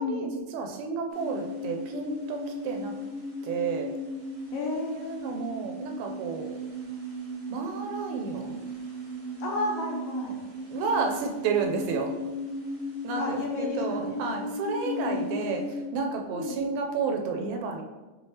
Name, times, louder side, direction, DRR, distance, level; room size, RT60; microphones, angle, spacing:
voice 1, 0.0-0.5 4.5-5.2 9.4-10.4 13.2-14.2 14.8-15.3 16.3-16.6, left 3 dB, 75° left, -1 dB, 1.9 m, -32 dB
voice 2, 0.5-2.9 3.4-3.9 4.9-6.5 7.5-8.6 10.7-12.1 13.0-17.8, right 5 dB, 85° right, 3 dB, 2.0 m, -31 dB
sound 1, 1.1-15.8, equal, 60° right, 1.1 m, -36 dB
6.2 x 3.0 x 2.8 m, 1.2 s
omnidirectional pair, 3.5 m